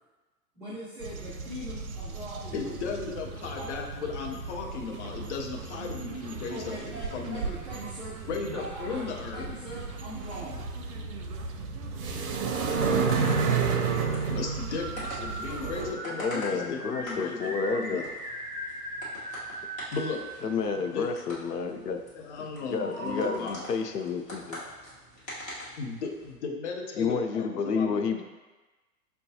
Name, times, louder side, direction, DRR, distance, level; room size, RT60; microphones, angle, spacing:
voice 1, 0.5-3.2 3.5-3.7 6.5-8.2 8.5-10.7, right 1 dB, 10° right, -12 dB, 0.5 m, -41 dB
sound 1, 1.0-15.9, right 5 dB, 65° right, 0.6 m, -32 dB
voice 2, 2.5-7.4 8.3-9.5 14.3-18.0 19.3-19.6 19.9-20.3 20.8-21.1 22.1-23.6 25.8-28.0, left 5 dB, 45° left, 1 dB, 0.7 m, -36 dB
sound 2, 12.8-26.3, equal, 15° left, 1.0 m, -45 dB
sound 3, 14.4-21.6 22.8-23.4, right 1 dB, 40° right, 1.0 m, -39 dB
voice 3, 16.1-18.1 20.4-22.0 22.7-24.6 27.0-28.2, left 5 dB, 80° left, 5 dB, 0.6 m, -30 dB
6.3 x 2.3 x 2.7 m, 1.2 s
figure-of-eight pair, 115°, 47 cm